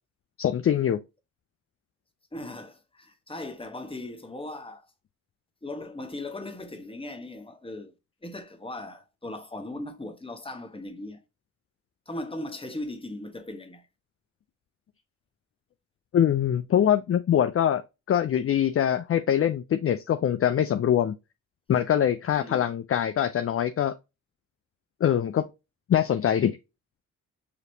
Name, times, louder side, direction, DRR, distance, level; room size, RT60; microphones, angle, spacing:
voice 1, 0.4-1.0 16.1-17.8 18.1-21.2 21.7-23.9 25.0-25.5 25.9-26.6, left 10 dB, 45° left, 0.4 m, -23 dB
voice 2, 2.3-4.8 5.6-7.9 8.2-11.2 12.1-13.9 16.7-16.9 22.4-22.7, left 1 dB, 15° left, 1.1 m, -38 dB
5.0 x 3.0 x 2.7 m
cardioid pair, 60°, 32 cm